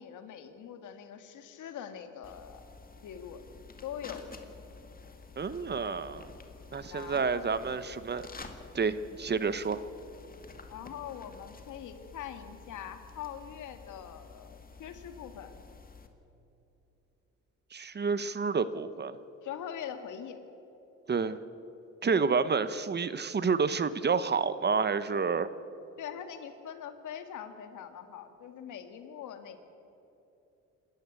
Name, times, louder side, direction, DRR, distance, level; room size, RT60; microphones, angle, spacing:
voice 1, 0.0-2.6 3.0-3.4 3.8-4.3 5.7-6.0 6.9-7.9 10.7-15.6 19.4-20.4 26.0-29.6, left 9 dB, 80° left, 8 dB, 2.0 m, -43 dB
sound 1, 2.2-16.1, left 4 dB, 30° left, 2.1 m, -50 dB
voice 2, 5.4-6.3 6.7-8.3 8.7-9.8 17.7-19.2 21.1-21.4 22.0-25.5, right 5 dB, 35° right, 14 dB, 1.0 m, -29 dB
27.0 x 13.5 x 8.4 m, 3.0 s
cardioid pair, 90°, 30 cm